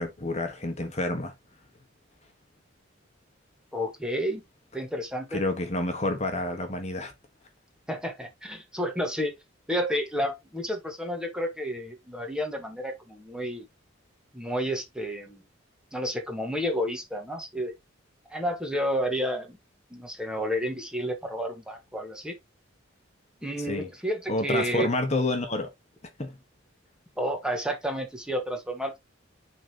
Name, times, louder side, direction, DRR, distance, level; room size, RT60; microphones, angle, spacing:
voice 1, 0.0-1.3 5.3-7.1 23.6-23.9 24.3-25.7 26.2-26.4, left 2 dB, 35° left, 1.5 m, -29 dB
voice 2, 3.7-4.4 4.7-5.4 7.9-9.3 9.7-13.6 14.3-15.4 15.9-17.7 18.3-19.6 19.9-22.4 23.4-24.9 27.2-29.0, equal, 5° right, 1.6 m, -30 dB
10.0 x 4.0 x 3.0 m
head